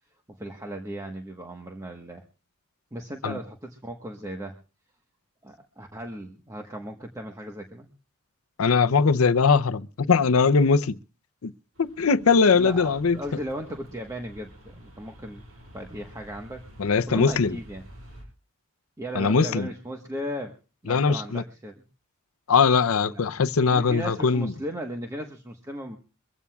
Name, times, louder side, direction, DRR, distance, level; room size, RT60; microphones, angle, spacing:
voice 1, 0.3-2.2 2.9-4.6 5.4-7.9 12.5-15.4 15.7-16.6 17.1-17.8 19.0-20.5 20.8-21.8 23.1-23.2 23.7-26.0, equal, 15° right, 1.2 m, -36 dB
voice 2, 8.6-11.0 11.4-11.5 11.8-13.2 16.8-17.6 19.1-19.7 20.9-21.4 22.5-24.5, left 5 dB, 85° left, 0.6 m, -21 dB
sound 1, 11.7-18.2, equal, 75° right, 6.4 m, -49 dB
24.0 x 15.5 x 2.4 m
head